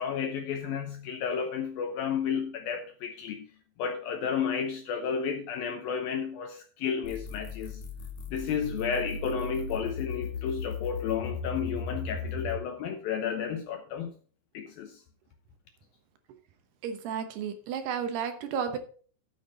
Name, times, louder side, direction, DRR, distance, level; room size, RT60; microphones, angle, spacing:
voice 1, 0.0-3.5 3.8-7.8 8.3-14.1 14.5-15.0, left 7 dB, 75° left, 2.2 m, -32 dB
sound 1, 7.0-12.6, left 4 dB, 55° left, 2.2 m, -36 dB
voice 2, 16.8-18.8, right 7 dB, 70° right, 2.9 m, -32 dB
13.0 x 7.4 x 4.1 m
omnidirectional pair, 5.2 m